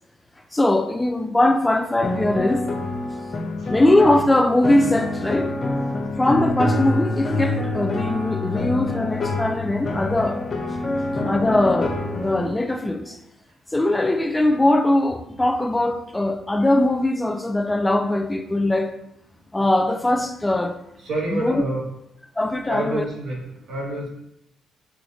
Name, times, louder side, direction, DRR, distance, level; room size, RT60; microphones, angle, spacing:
voice 1, 0.5-2.7 3.7-5.5 6.2-10.4 11.3-12.0 12.2-13.2 13.7-18.9 19.5-20.8 21.3-21.6 22.4-23.1, left 1 dB, 15° left, 0.4 m, -21 dB
sound 1, 2.0-12.5, left 2 dB, 40° left, 0.8 m, -26 dB
voice 2, 21.0-21.8 22.7-24.1, right 1 dB, 75° right, 1.6 m, -29 dB
6.3 x 3.0 x 2.6 m
cardioid pair, 90°, 0 cm